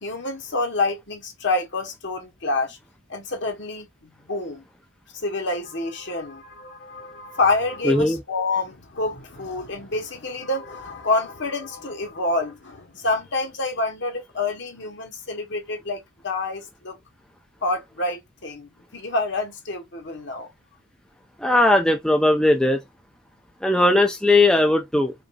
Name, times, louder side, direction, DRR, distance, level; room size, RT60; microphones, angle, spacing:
voice 1, 0.0-2.8 3.1-4.6 5.2-17.0 17.6-20.5, left 2 dB, 60° left, 1.3 m, -27 dB
voice 2, 7.8-8.2 21.4-22.8 23.6-25.1, left 2 dB, 5° left, 0.5 m, -18 dB
5.1 x 2.6 x 2.6 m
head